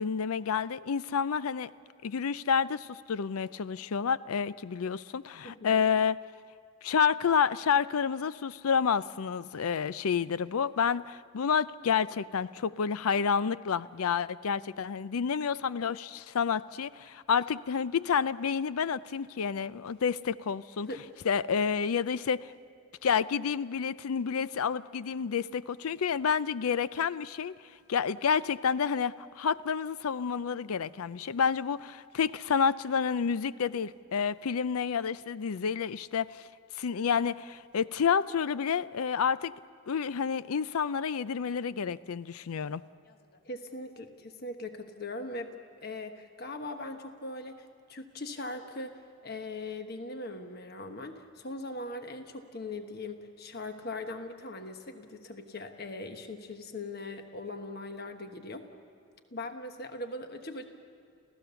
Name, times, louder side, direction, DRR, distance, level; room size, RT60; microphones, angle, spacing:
voice 1, 0.0-1.7 2.0-6.2 6.8-20.9 21.2-22.5 23.0-27.6 27.9-36.4 36.8-39.5 39.9-42.8, left 6 dB, 85° left, 17 dB, 0.5 m, -29 dB
voice 2, 5.4-5.8 20.8-21.0 43.1-45.5 45.8-48.9 49.2-58.6 59.3-60.6, left 2 dB, 45° left, 6 dB, 1.3 m, -40 dB
28.0 x 16.0 x 7.0 m, 2.4 s
head